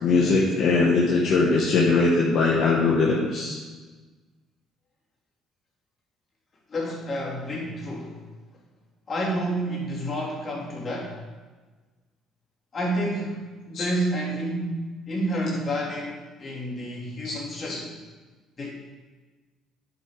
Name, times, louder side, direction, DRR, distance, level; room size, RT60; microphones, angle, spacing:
voice 1, 0.0-3.6 13.7-13.8 17.2-17.4 17.6-17.8, left 3 dB, 60° left, -2 dB, 1.4 m, -21 dB
voice 2, 6.7-8.2 9.1-11.2 12.7-17.9 18.6-18.7, equal, 40° left, -4 dB, 3.2 m, -29 dB
9.1 x 7.1 x 4.9 m, 1.3 s
supercardioid pair, 80°, 0 cm